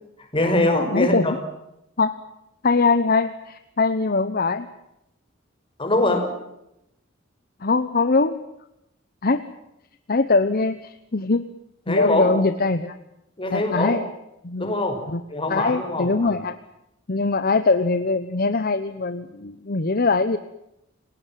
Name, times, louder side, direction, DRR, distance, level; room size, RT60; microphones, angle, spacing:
voice 1, 0.3-1.3 5.8-6.3 11.9-12.3 13.4-14.0 14.6-15.0 15.3-16.4, left 1 dB, 25° left, 5 dB, 5.4 m, -23 dB
voice 2, 0.9-1.4 2.0-2.2 2.6-4.7 7.6-8.4 9.2-9.4 10.1-11.4 11.9-13.0 13.5-14.1 14.4-14.7 15.1-15.2 15.5-16.6 17.1-20.4, left 3 dB, 50° left, 11 dB, 1.0 m, -22 dB
29.0 x 19.0 x 7.6 m, 0.85 s
head